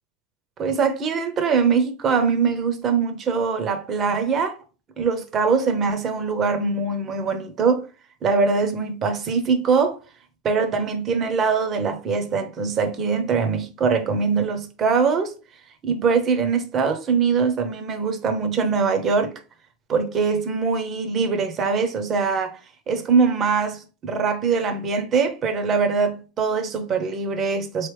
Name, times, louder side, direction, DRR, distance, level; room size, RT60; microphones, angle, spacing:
voice 1, 0.6-4.6 5.0-7.9 8.2-10.0 10.4-15.3 15.8-19.3 19.9-22.6 22.9-27.9, right 5 dB, 25° right, 0.8 m, -22 dB
4.1 x 3.1 x 3.3 m
supercardioid pair, 150°, 0 cm